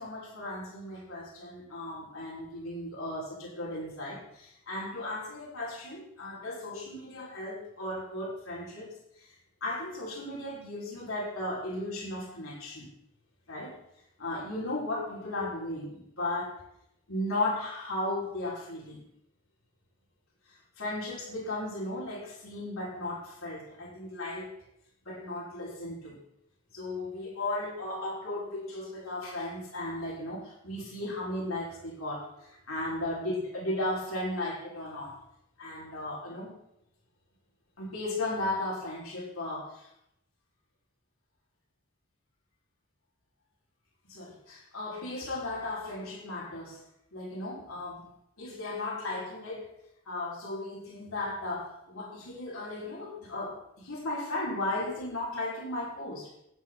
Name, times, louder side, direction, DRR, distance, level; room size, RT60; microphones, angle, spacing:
voice 1, 0.0-8.9 9.2-9.3 9.6-12.9 13.5-13.8 14.2-16.6 17.1-19.0 20.5-24.6 25.0-26.2 26.7-35.2 35.6-36.5 37.8-39.9 44.1-46.8 47.1-48.1 48.4-49.7 50.0-56.3, left 2 dB, 85° left, -5 dB, 5.9 m, -36 dB
13.0 x 10.5 x 4.2 m, 0.78 s
head